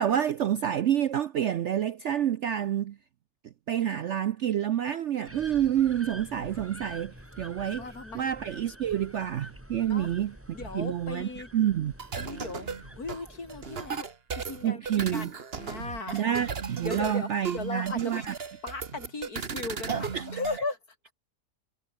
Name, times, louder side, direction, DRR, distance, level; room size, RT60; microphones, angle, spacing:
voice 1, 0.0-3.0 3.7-7.9 8.1-10.3 10.7-11.9 14.6-15.3 16.1-18.3 19.9-20.3, right 10 dB, 65° right, 0.7 m, -28 dB
sound 1, 5.3-14.0, equal, 10° right, 4.1 m, -47 dB
voice 2, 7.8-8.3 9.9-10.1 10.5-11.5 12.2-12.7 13.0-14.1 14.5-14.8 15.1-16.3 16.8-18.3 18.6-20.8, left 3 dB, 65° left, 4.3 m, -37 dB
sound 2, 12.0-20.6, right 5 dB, 40° right, 1.5 m, -36 dB
omnidirectional pair, 1.7 m